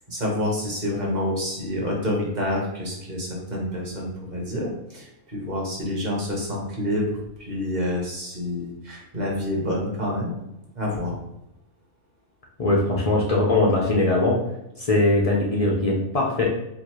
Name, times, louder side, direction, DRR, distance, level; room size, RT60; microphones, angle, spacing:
voice 1, 0.1-10.3 10.7-11.2, left 1 dB, 35° right, -3 dB, 1.0 m, -28 dB
voice 2, 12.6-14.4 14.8-16.5, left 2 dB, 75° left, -3 dB, 0.3 m, -21 dB
4.5 x 2.4 x 3.0 m, 0.87 s
omnidirectional pair, 1.6 m